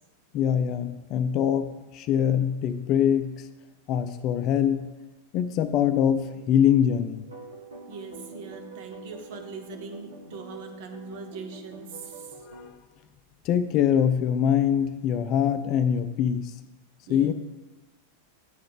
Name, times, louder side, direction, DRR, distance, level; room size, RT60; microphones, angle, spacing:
voice 1, 0.3-3.3 3.9-4.9 5.3-7.2 12.5-12.7 13.4-16.5 17.1-17.3, left 9 dB, 40° left, 10 dB, 0.5 m, -23 dB
sound 1, 7.3-12.7, right 3 dB, 75° right, 1.3 m, -45 dB
voice 2, 7.9-12.5 17.1-17.3, right 4 dB, 50° right, 5 dB, 1.1 m, -41 dB
8.4 x 3.9 x 6.7 m, 1.1 s
figure-of-eight pair, 90°, 0 cm